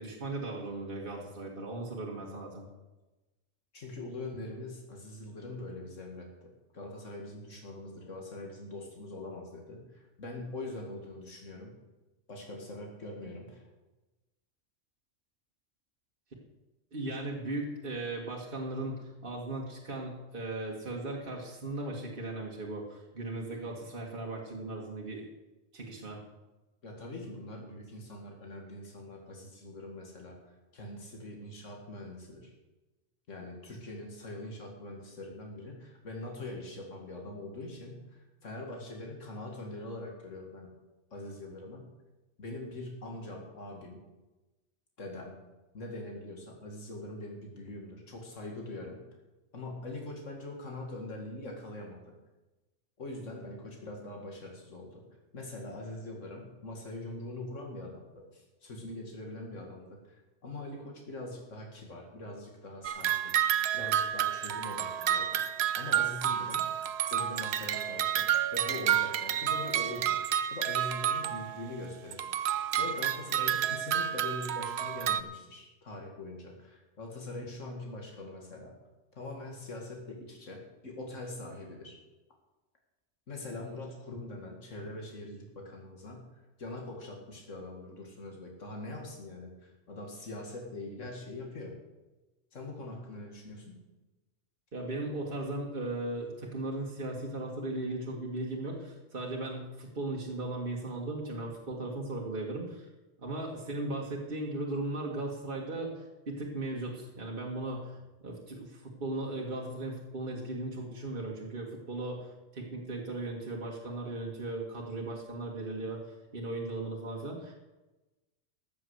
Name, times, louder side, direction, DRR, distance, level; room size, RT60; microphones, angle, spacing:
voice 1, 0.0-2.7 16.9-25.3 25.7-26.2 94.7-102.9 103.2-116.0 116.3-117.5, right 2 dB, 45° right, -2 dB, 2.0 m, -37 dB
voice 2, 3.7-11.7 12.3-13.6 26.8-32.5 33.3-40.7 41.1-41.9 42.4-44.0 45.0-45.3 45.7-49.0 49.5-52.1 53.0-55.0 55.3-63.3 63.7-65.4 65.7-66.7 67.1-68.3 68.5-70.2 70.5-72.2 72.8-78.8 79.1-82.0 83.3-86.2 86.6-91.8 92.5-93.8, left 2 dB, 90° left, 0 dB, 2.4 m, -43 dB
sound 1, 62.8-71.7 72.1-75.2, right 10 dB, 65° right, 0.9 m, -30 dB
13.5 x 7.1 x 7.9 m, 1.1 s
omnidirectional pair, 1.3 m